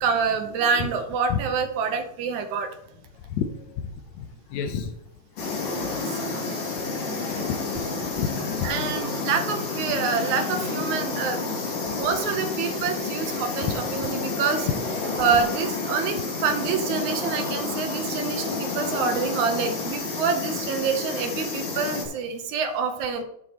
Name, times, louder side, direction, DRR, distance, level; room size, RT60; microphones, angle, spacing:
voice 1, 0.0-2.7 5.6-7.4 8.6-11.5 11.8-14.7 15.2-23.2, right 5 dB, 75° right, 6 dB, 2.4 m, -27 dB
voice 2, 4.5-4.9 6.3-7.4 7.8-8.7, left 8 dB, 75° left, 4 dB, 2.0 m, -31 dB
sound 1, 5.4-22.1, left 3 dB, 55° left, 3.4 m, -30 dB
12.0 x 7.5 x 3.0 m, 0.79 s
omnidirectional pair, 3.4 m